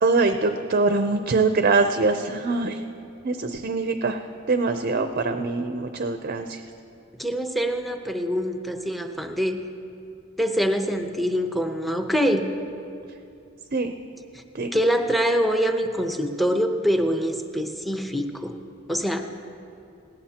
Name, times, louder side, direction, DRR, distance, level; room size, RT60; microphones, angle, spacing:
voice 1, 0.0-2.8 3.2-6.6 13.7-13.9 14.5-14.7, right 3 dB, 45° right, 7 dB, 0.6 m, -23 dB
voice 2, 7.2-9.6 10.4-12.5 14.3-14.4 14.7-18.6 18.9-19.2, equal, ahead, 5 dB, 0.8 m, -24 dB
18.0 x 17.5 x 2.9 m, 2.6 s
head